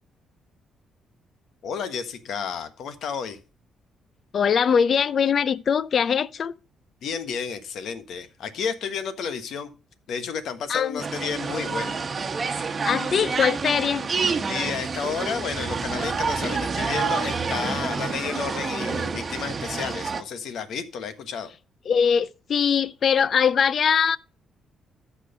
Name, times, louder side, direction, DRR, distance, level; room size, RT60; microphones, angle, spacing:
voice 1, 1.6-3.4 7.0-9.7 10.1-11.9 14.5-21.5, left 6 dB, 70° left, 1.4 m, -31 dB
voice 2, 4.3-6.5 10.7-11.0 12.8-14.1 21.9-24.2, left 7 dB, 55° left, 0.5 m, -22 dB
sound 1, 11.0-20.2, right 5 dB, 35° right, 1.1 m, -28 dB
13.5 x 5.1 x 5.0 m
cardioid pair, 90°, 0 cm